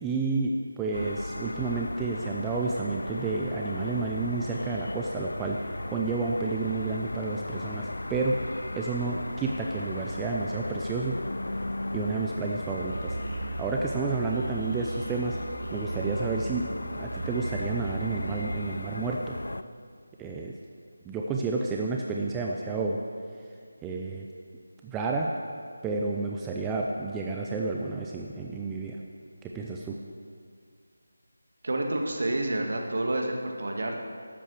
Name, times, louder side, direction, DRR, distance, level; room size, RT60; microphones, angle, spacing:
voice 1, 0.0-5.6 5.9-8.4 8.7-11.2 11.9-13.2 13.6-15.4 15.7-16.6 17.0-19.4 20.2-20.5 21.0-23.0 23.8-24.3 24.8-25.3 25.8-29.0 29.4-30.0, right 3 dB, 10° right, -1 dB, 0.5 m, -30 dB
sound 1, 0.9-19.6, left 2 dB, 65° left, 0.4 m, -37 dB
Musical instrument, 12.6-18.5, right 3 dB, 85° left, 3.1 m, -37 dB
voice 2, 31.6-34.0, right 1 dB, 55° right, 2 dB, 1.9 m, -29 dB
12.0 x 8.7 x 6.5 m, 2.1 s
figure-of-eight pair, 160°, 0 cm